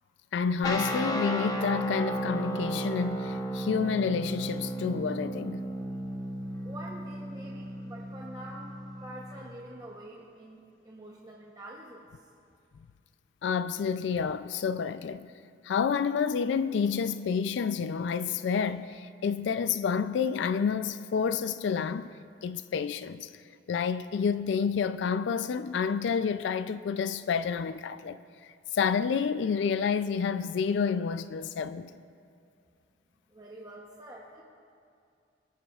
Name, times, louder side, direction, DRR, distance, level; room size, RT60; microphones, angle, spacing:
voice 1, 0.3-5.6 13.4-15.3 15.6-22.1 22.4-23.3 23.7-28.2 28.7-31.9, left 6 dB, 70° left, 0.3 m, -29 dB
sound 1, 0.6-9.5, right 1 dB, 20° left, 0.8 m, -34 dB
voice 2, 6.6-12.1 33.3-34.4, right 1 dB, 20° right, 0.8 m, -46 dB
25.0 x 9.3 x 2.4 m
head